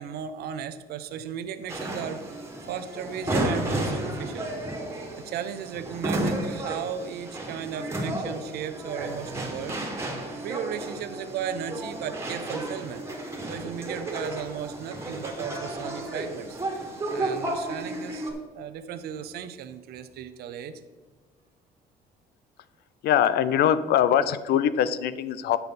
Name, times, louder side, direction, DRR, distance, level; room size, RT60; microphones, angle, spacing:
voice 1, 0.0-2.4 2.7-4.5 5.2-9.8 10.4-13.0 13.5-16.6 17.1-20.8, right 8 dB, 70° right, 9 dB, 0.7 m, -35 dB
sound 1, 1.7-18.3, right 1 dB, 15° right, 2.2 m, -32 dB
voice 2, 23.0-25.6, left 9 dB, 70° left, 15 dB, 0.6 m, -22 dB
10.5 x 6.9 x 4.3 m, 1.4 s
cardioid pair, 110°, 17 cm